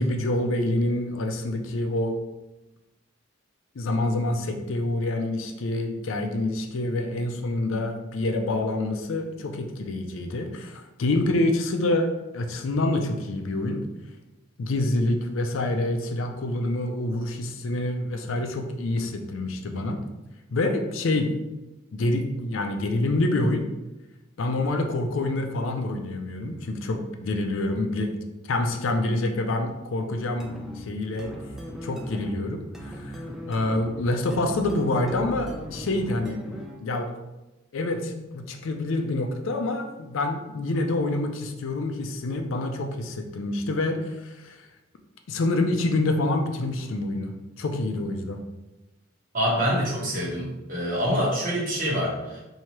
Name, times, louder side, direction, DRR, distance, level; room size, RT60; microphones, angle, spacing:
voice 1, 0.0-2.2 3.8-13.8 14.6-20.0 20.5-21.3 21.9-23.6 24.4-31.3 31.8-36.4 36.8-37.1 37.7-44.7 45.3-48.4, left 2 dB, 70° left, 5 dB, 0.4 m, -27 dB
sound 1, 30.4-36.9, equal, ahead, 0.3 m, -38 dB
voice 2, 49.3-52.4, equal, 40° right, -5 dB, 1.1 m, -26 dB
4.5 x 2.7 x 3.0 m, 1.0 s
head